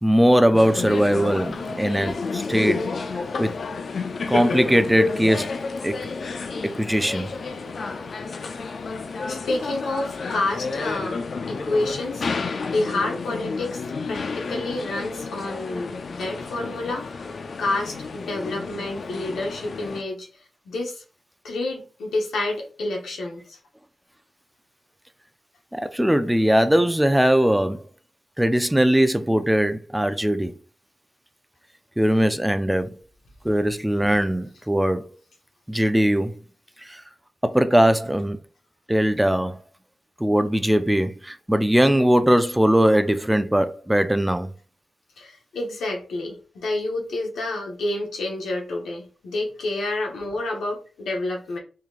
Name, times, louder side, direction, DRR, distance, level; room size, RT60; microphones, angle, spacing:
voice 1, 0.0-2.8 3.4-3.5 4.3-6.0 6.6-7.3 25.7-27.8 28.4-30.5 32.0-33.0 33.4-35.1 35.7-36.3 36.8-37.0 37.4-38.4 38.9-39.6 40.2-44.5, equal, 10° right, 0.4 m, -20 dB
sound 1, 0.5-20.0, left 4 dB, 60° left, 0.4 m, -30 dB
voice 2, 9.3-11.2 11.5-12.2 12.6-13.8 14.1-17.3 17.6-20.3 20.7-21.0 21.4-23.6 45.2-51.6, left 2 dB, 85° left, 1.1 m, -29 dB
3.7 x 2.9 x 2.4 m
cardioid pair, 55°, 0 cm